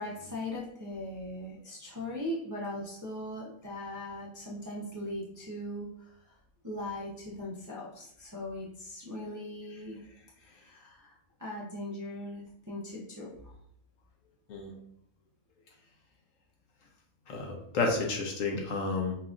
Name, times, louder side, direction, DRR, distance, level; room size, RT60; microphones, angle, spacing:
voice 1, 0.0-6.2 6.6-10.0 10.5-11.1 11.4-13.5, left 1 dB, 20° right, -6 dB, 0.5 m, -39 dB
voice 2, 17.3-19.1, left 3 dB, 65° left, 1 dB, 1.1 m, -31 dB
5.6 x 2.5 x 2.5 m, 0.69 s
omnidirectional pair, 1.6 m